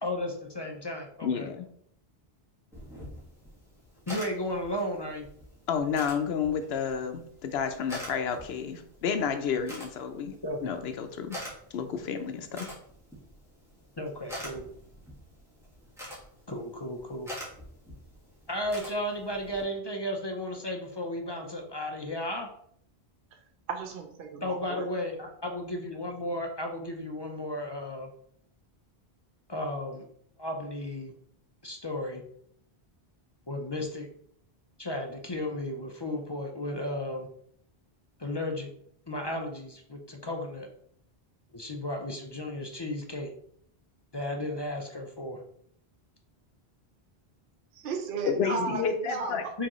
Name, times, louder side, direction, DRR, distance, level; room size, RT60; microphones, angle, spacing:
voice 1, 0.0-1.5 4.1-5.3 10.4-10.7 14.0-14.7 16.5-17.3 18.5-22.5 24.4-28.1 29.5-30.1 30.4-31.1 31.6-32.2 33.5-34.1 34.8-37.3 38.2-38.7 39.1-40.7 41.5-43.3 44.1-45.4 48.6-48.7 49.6-49.7, left 1 dB, 30° left, 2 dB, 0.5 m, -34 dB
voice 2, 1.2-1.7 5.7-10.3 10.6-11.4 11.7-12.7 48.3-49.4, left 6 dB, 80° left, 8 dB, 0.8 m, -30 dB
sound 1, 2.7-19.6, equal, 5° right, 1.6 m, -46 dB
voice 3, 23.7-24.9 47.7-49.5, right 4 dB, 65° right, 5 dB, 0.7 m, -34 dB
4.7 x 3.6 x 3.0 m, 0.66 s
omnidirectional pair, 1.0 m